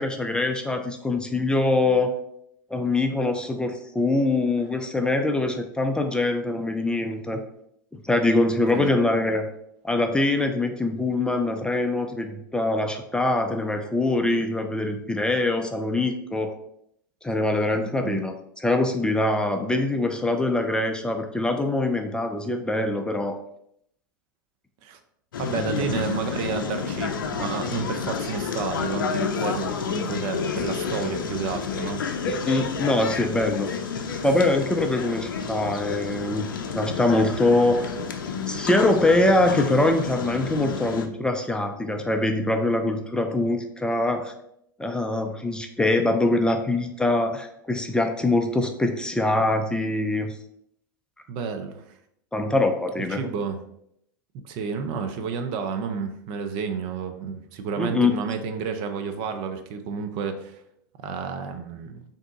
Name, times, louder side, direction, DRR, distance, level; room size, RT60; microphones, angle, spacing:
voice 1, 0.0-2.1 2.7-7.4 7.9-9.5 9.8-16.5 17.2-23.4 25.5-25.9 32.3-33.7 34.2-36.5 36.7-37.9 38.5-44.3 44.8-50.3 52.3-53.2 57.8-58.1, left 2 dB, 10° left, 5 dB, 0.4 m, -23 dB
voice 2, 17.7-18.2 24.8-25.0 25.4-32.0 51.3-51.8 53.1-53.6 54.4-60.6 61.0-62.0, right 5 dB, 50° right, 7 dB, 0.6 m, -30 dB
sound 1, 25.3-41.1, left 6 dB, 80° left, 0.5 m, -30 dB
3.7 x 2.7 x 3.6 m, 0.73 s
hypercardioid pair, 95°, 11 cm